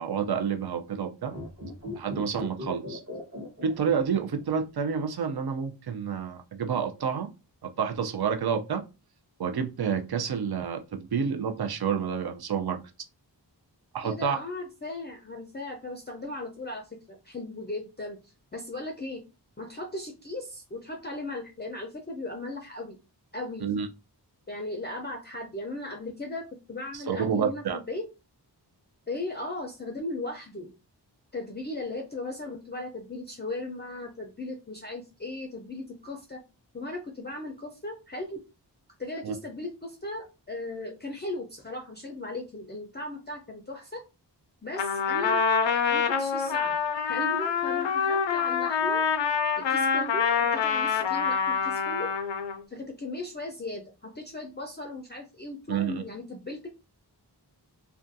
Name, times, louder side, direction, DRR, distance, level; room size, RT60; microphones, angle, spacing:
voice 1, 0.0-1.3 2.0-3.0 3.6-7.3 7.6-8.8 9.4-12.8 13.9-14.4 23.6-23.9 26.9-27.8 39.2-39.3 55.7-56.0, right 7 dB, 60° right, 7 dB, 0.5 m, -29 dB
sound 1, 1.2-4.7 4.9-5.0, left 1 dB, 40° right, 0.9 m, -39 dB
voice 2, 14.0-18.2 18.5-19.2 19.6-23.0 23.3-23.7 24.5-28.0 29.1-30.7 31.3-36.4 36.7-38.4 39.0-44.0 44.6-45.4 45.9-46.8 47.0-49.0 49.6-52.1 52.7-56.7, left 2 dB, 25° left, 2 dB, 0.5 m, -37 dB
Trumpet, 44.8-52.6, left 6 dB, 85° left, 0.5 m, -26 dB
2.4 x 2.3 x 2.6 m, 0.29 s
wide cardioid pair, 45°, 43 cm